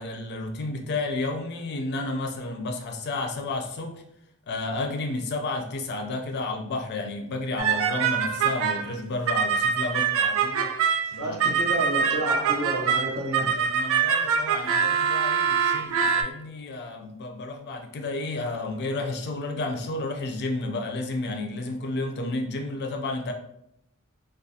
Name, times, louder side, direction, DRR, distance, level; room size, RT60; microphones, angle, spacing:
voice 1, 0.0-4.0 4.5-10.7 11.0-11.4 13.5-23.3, left 2 dB, 50° left, 4 dB, 0.4 m, -31 dB
sound 1, 7.6-9.0 9.3-16.2, right 6 dB, 65° right, 0.3 m, -24 dB
voice 2, 11.2-13.5, right 1 dB, 90° right, -3 dB, 1.0 m, -30 dB
2.4 x 2.2 x 2.7 m, 0.78 s
head